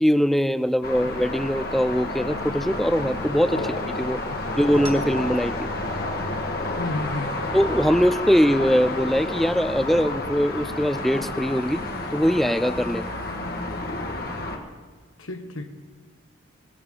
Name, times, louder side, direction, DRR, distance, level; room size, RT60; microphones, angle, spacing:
voice 1, 0.0-4.2 4.6-5.7 7.5-11.8 12.1-13.0, equal, ahead, 13 dB, 0.3 m, -22 dB
sound 1, 0.8-14.6, left 2 dB, 45° left, 1.3 m, -30 dB
sound 2, 3.9-12.8, right 2 dB, 25° right, 1.9 m, -46 dB
voice 2, 4.1-4.6 6.8-7.3 15.2-15.7, left 1 dB, 80° left, 6 dB, 1.3 m, -32 dB
19.0 x 15.0 x 3.7 m, 1.4 s
head